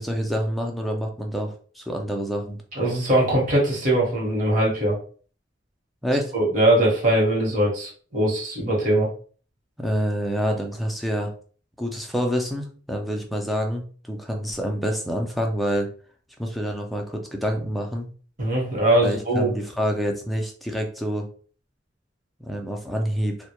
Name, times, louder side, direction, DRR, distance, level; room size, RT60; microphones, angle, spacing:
voice 1, 0.0-2.6 6.0-6.3 9.8-11.3 11.8-15.9 16.4-18.1 19.0-21.3 22.4-23.4, equal, ahead, 2 dB, 0.4 m, -27 dB
voice 2, 2.7-5.0 6.3-9.1 18.4-19.5, right 1 dB, 45° right, -3 dB, 1.0 m, -21 dB
2.1 x 2.0 x 2.8 m, 0.42 s
head